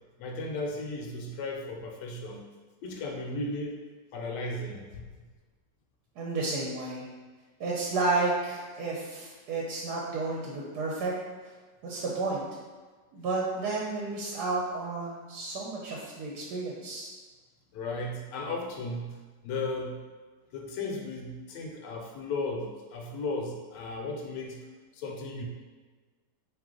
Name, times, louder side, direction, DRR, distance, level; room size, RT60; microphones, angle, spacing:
voice 1, 0.2-2.4 2.8-3.8 4.1-5.3 17.7-19.2 19.4-20.0 20.5-24.6 24.9-25.4, left 2 dB, 80° left, 1 dB, 1.2 m, -35 dB
voice 2, 6.2-7.0 7.6-11.1 11.8-12.4 13.1-17.1, right 3 dB, 70° right, -3 dB, 1.1 m, -31 dB
3.8 x 2.9 x 3.7 m, 1.4 s
omnidirectional pair, 1.9 m